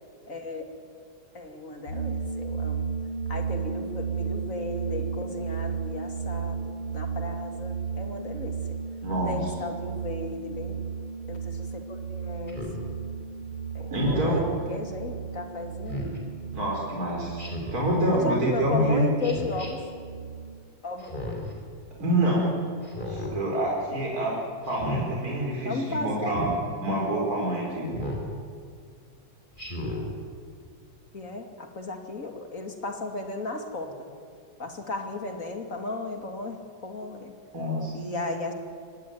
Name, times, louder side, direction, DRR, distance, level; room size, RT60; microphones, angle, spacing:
voice 1, 0.3-0.6 1.3-2.9 3.3-8.6 9.3-10.8 11.3-12.6 13.7-16.1 18.1-19.8 20.8-21.1 25.6-26.3 31.1-34.1 34.6-37.3 37.9-38.5, left 2 dB, 45° left, 4 dB, 3.0 m, -35 dB
sound 1, 1.9-20.5, right 6 dB, 70° left, 5.4 m, -34 dB
voice 2, 9.0-9.5 13.9-14.4 16.5-17.5 17.7-19.0 22.0-22.6 23.1-24.4 24.7-26.5 26.8-28.0 37.5-37.9, right 1 dB, 50° right, -3 dB, 5.3 m, -26 dB
Speech synthesizer, 12.5-12.8 13.9-14.4 15.9-16.2 17.4-17.9 19.2-19.7 21.0-21.5 22.8-23.3 24.7-25.1 26.3-26.6 27.9-28.3 29.6-30.1, left 1 dB, 25° left, 4.3 m, -34 dB
24.5 x 18.5 x 9.5 m, 2.2 s
omnidirectional pair, 2.0 m